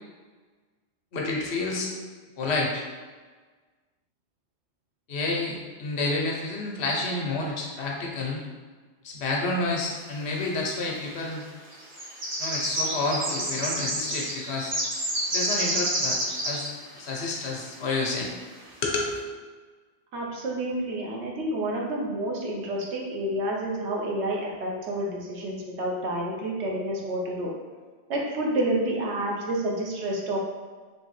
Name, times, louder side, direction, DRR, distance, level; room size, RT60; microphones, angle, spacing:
voice 1, 1.1-1.9 2.4-2.8 5.1-8.5 9.0-11.5 12.4-14.8 15.3-16.2 16.4-16.7 17.0-18.3 18.8-19.1, left 3 dB, 75° left, -1 dB, 1.0 m, -29 dB
sound 1, 10.3-10.4 11.2-11.4 11.7-16.7 17.0-17.1 17.5-17.6 18.4-18.5 18.9-19.1, right 1 dB, 45° right, 0.8 m, -29 dB
voice 2, 20.1-27.5 28.1-30.4, right 1 dB, 85° right, -2 dB, 1.0 m, -29 dB
3.3 x 2.8 x 3.0 m, 1.4 s
omnidirectional pair, 1.1 m